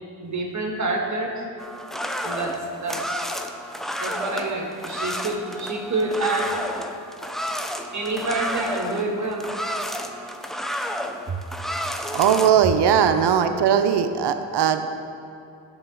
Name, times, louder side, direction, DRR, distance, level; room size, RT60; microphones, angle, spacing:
voice 1, 0.2-1.3 2.2-3.2 4.0-6.5 7.9-9.5 11.3-11.4, right 2 dB, 40° right, 0 dB, 1.6 m, -27 dB
sound 1, 1.6-12.5, equal, ahead, 0.4 m, -31 dB
voice 2, 12.1-14.9, right 8 dB, 60° right, 8 dB, 0.6 m, -19 dB
9.6 x 3.8 x 6.2 m, 2.6 s
cardioid pair, 75°, 47 cm